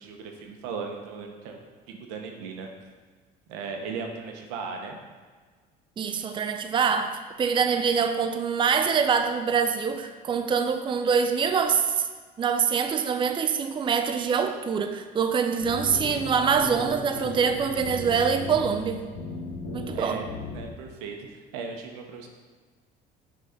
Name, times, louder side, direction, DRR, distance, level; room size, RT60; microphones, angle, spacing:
voice 1, 0.0-1.6 2.1-2.7 3.5-5.0 19.9-20.3 20.5-22.3, right 5 dB, 90° right, 3 dB, 1.0 m, -37 dB
voice 2, 6.0-12.1 12.4-19.0 19.7-20.2, right 6 dB, 25° right, 7 dB, 0.5 m, -25 dB
sound 1, 15.6-20.7, left 2 dB, 75° left, 1.7 m, -36 dB
6.4 x 4.0 x 5.7 m, 1.5 s
supercardioid pair, 95°, 19 cm